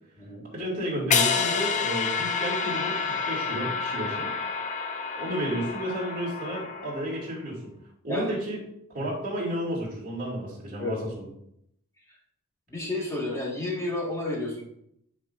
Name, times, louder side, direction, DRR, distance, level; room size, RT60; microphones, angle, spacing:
voice 1, 0.5-4.3 5.2-7.7 8.0-8.6 8.9-11.3, right 1 dB, 40° right, -5 dB, 2.7 m, -32 dB
sound 1, 1.1-7.2, left 5 dB, 35° left, 0.5 m, -29 dB
voice 2, 10.8-11.1 12.7-14.6, left 2 dB, 15° left, -4 dB, 1.9 m, -31 dB
9.1 x 5.0 x 2.7 m, 0.73 s
head